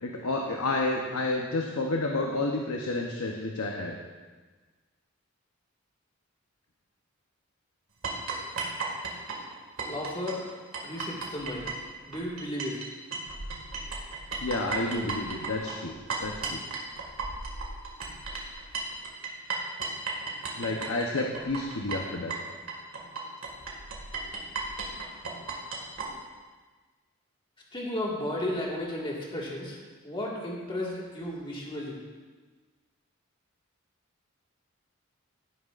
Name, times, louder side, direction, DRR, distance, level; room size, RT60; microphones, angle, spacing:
voice 1, 0.0-4.0 14.4-15.9 16.2-16.6 20.6-22.3, left 2 dB, 90° left, 1 dB, 0.8 m, -30 dB
sound 1, 8.0-12.9 13.1-26.1, right 4 dB, 85° right, 1.9 m, -35 dB
voice 2, 9.9-10.4 10.8-11.7 12.1-12.8 27.7-29.8 30.0-32.0, left 1 dB, 25° left, -3 dB, 1.7 m, -34 dB
15.5 x 9.1 x 2.5 m, 1.4 s
head